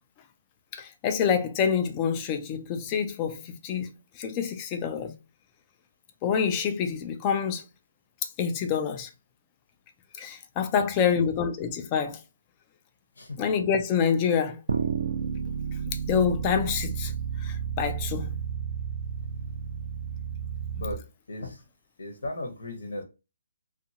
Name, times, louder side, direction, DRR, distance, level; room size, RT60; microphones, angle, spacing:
voice 1, 0.7-3.9 4.2-5.1 6.2-7.6 8.4-9.1 10.2-12.2 13.4-14.6 16.1-17.1 17.4-18.3, left 7 dB, 20° left, 0.4 m, -27 dB
voice 2, 10.7-11.2 13.2-13.4 20.7-21.0 21.3-21.6 22.0-23.0, left 2 dB, 85° left, 0.9 m, -36 dB
sound 1, 14.7-20.9, right 7 dB, 75° right, 0.5 m, -31 dB
2.7 x 2.4 x 2.7 m
hypercardioid pair, 165°, 0 cm